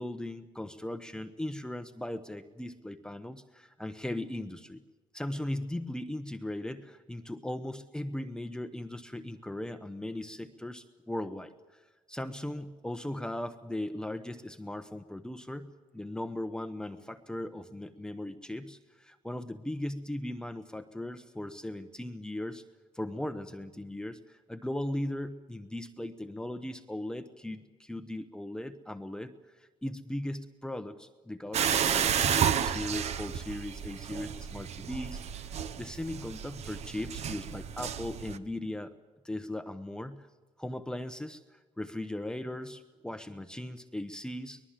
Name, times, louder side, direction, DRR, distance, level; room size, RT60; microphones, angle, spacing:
voice 1, 0.0-4.8 5.1-11.8 12.1-22.6 22.9-35.2 35.5-38.9 39.2-40.3 40.6-44.6, left 1 dB, 5° left, 8 dB, 0.9 m, -38 dB
sound 1, 31.5-38.4, right 8 dB, 65° right, 1.0 m, -31 dB
23.0 x 20.5 x 7.5 m, 1.2 s
cardioid pair, 115°, 12 cm